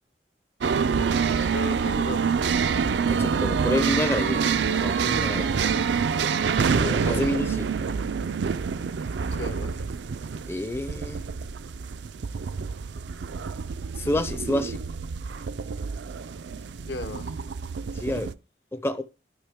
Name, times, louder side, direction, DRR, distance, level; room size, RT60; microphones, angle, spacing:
sound 1, 0.6-18.3, right 6 dB, 80° right, 0.4 m, -27 dB
voice 1, 1.3-2.3 7.1-7.3 9.3-9.8 16.9-17.3, left 2 dB, 75° left, 0.9 m, -36 dB
voice 2, 3.0-5.5 6.8-7.7 10.5-11.2 13.9-14.8 17.9-18.3 18.7-19.0, left 1 dB, 15° left, 0.4 m, -29 dB
12.0 x 5.1 x 3.5 m
head